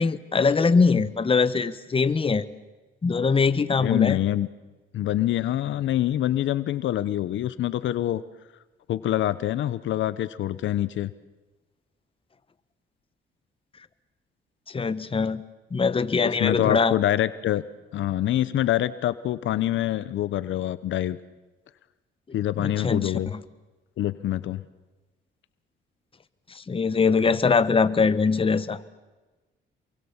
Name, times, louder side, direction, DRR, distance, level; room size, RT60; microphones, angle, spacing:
voice 1, 0.0-2.5 3.0-4.2 14.7-15.4 15.7-17.0 22.6-23.4 26.5-28.8, left 4 dB, 25° left, 13 dB, 1.2 m, -22 dB
voice 2, 3.8-4.5 4.9-8.2 8.9-11.1 16.2-17.6 17.9-21.2 22.3-23.3 24.0-24.6, left 13 dB, 75° left, 15 dB, 0.9 m, -25 dB
28.0 x 23.0 x 7.3 m, 1.2 s
cardioid pair, 90°, 20 cm